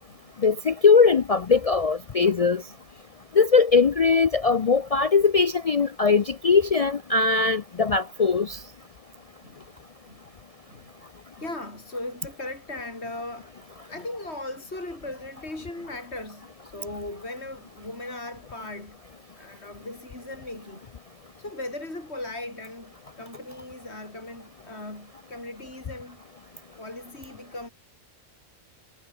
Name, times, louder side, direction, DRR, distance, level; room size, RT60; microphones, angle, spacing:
voice 1, 0.4-2.6 3.3-8.6, left 5 dB, 70° left, 0.3 m, -20 dB
voice 2, 9.4-9.8 10.1-10.3 10.7-10.9 11.4-13.6 13.9-19.0 19.3-20.8 21.4-26.2 26.8-27.7, left 2 dB, 50° left, 5.7 m, -38 dB
omnidirectional pair, 1.4 m